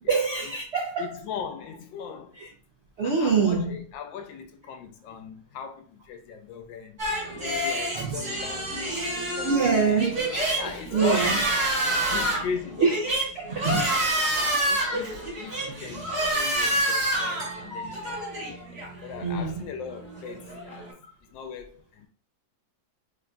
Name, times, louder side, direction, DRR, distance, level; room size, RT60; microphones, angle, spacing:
voice 1, 0.1-1.2 2.4-2.5 3.0-3.8 7.3-7.4 7.9-8.2 9.4-10.3 10.9-11.4 12.8-13.0 13.3-13.9 14.2-14.3 15.7-15.8 19.2-19.7, right 5 dB, 85° right, 0.5 m, -25 dB
voice 2, 1.0-2.4 3.0-7.0 7.3-9.0 9.4-10.1 10.6-11.5 11.8-13.2 13.7-13.8 14.3-18.2 19.0-22.1, left 6 dB, 90° left, 1.3 m, -39 dB
sound 1, 7.0-20.9, right 1 dB, 35° right, 2.3 m, -28 dB
3.9 x 3.6 x 2.2 m
omnidirectional pair, 2.0 m